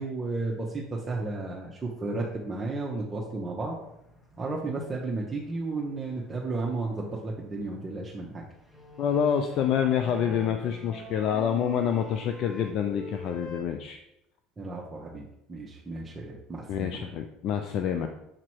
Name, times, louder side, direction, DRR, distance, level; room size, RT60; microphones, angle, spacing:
voice 1, 0.0-3.7 4.4-8.4 14.6-17.1, right 3 dB, 25° right, -3 dB, 1.0 m, -33 dB
sound 1, 3.7-13.6, right 1 dB, 5° left, 1.3 m, -46 dB
voice 2, 9.0-14.0 16.7-18.1, left 8 dB, 55° left, 6 dB, 0.4 m, -27 dB
7.3 x 2.9 x 4.6 m, 0.83 s
hypercardioid pair, 80°, 0 cm